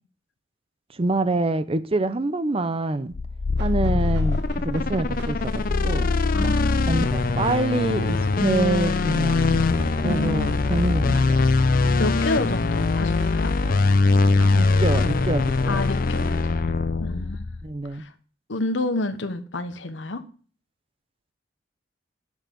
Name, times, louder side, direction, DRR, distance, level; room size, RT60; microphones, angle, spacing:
voice 1, 0.9-3.1 3.6-6.1 6.4-6.6 6.9-11.5 14.6-15.8 17.6-18.0, right 2 dB, 30° right, 0.6 m, -26 dB
sound 1, 3.1-17.7, left 3 dB, 50° left, 0.5 m, -22 dB
sound 2, 3.6-15.3, right 2 dB, 65° right, 1.2 m, -44 dB
voice 2, 6.3-6.9 10.0-10.6 12.0-13.5 15.7-17.5 17.9-18.1 18.5-20.2, left 2 dB, 75° left, 1.0 m, -29 dB
10.0 x 7.2 x 3.8 m
head